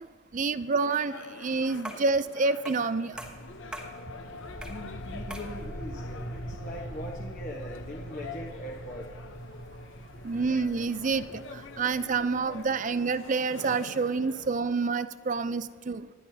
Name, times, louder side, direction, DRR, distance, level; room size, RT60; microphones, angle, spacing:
voice 1, 0.3-3.2 10.2-16.1, right 4 dB, 35° right, 14 dB, 0.4 m, -28 dB
sound 1, 0.8-14.5, left 4 dB, 55° left, 0.7 m, -47 dB
sound 2, 1.8-2.2 2.7-2.9 3.2-4.0 4.6-4.9 5.3-5.6, right 1 dB, 5° right, 1.1 m, -41 dB
sound 3, 3.1-13.3, equal, 90° left, 2.2 m, -42 dB
voice 2, 4.7-9.1, equal, 35° left, -2 dB, 1.1 m, -41 dB
26.5 x 11.0 x 2.8 m, 1.5 s
head